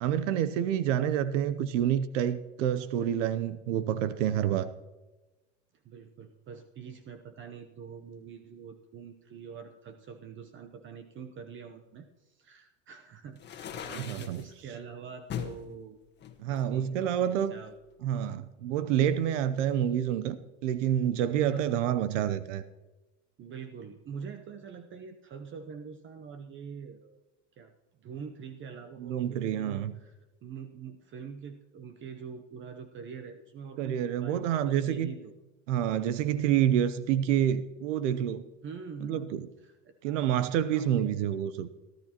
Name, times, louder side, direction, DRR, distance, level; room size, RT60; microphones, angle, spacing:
voice 1, 0.0-4.7 13.9-14.4 16.4-17.5 18.0-22.6 29.0-29.9 33.8-35.1 35.7-38.4 39.0-39.5 40.0-41.7, right 10 dB, 75° right, 14 dB, 0.8 m, -28 dB
voice 2, 5.8-16.0 16.5-17.8 21.4-21.7 23.4-27.2 27.5-27.7 28.0-30.2 30.4-35.3 38.6-39.3 39.6-40.2 40.7-41.3, right 6 dB, 30° right, 8 dB, 0.8 m, -45 dB
sound 1, 13.4-14.4 15.3-15.6 16.2-17.3, left 9 dB, 30° left, 1.5 m, -39 dB
18.0 x 12.5 x 3.0 m, 1.1 s
supercardioid pair, 120°, 37 cm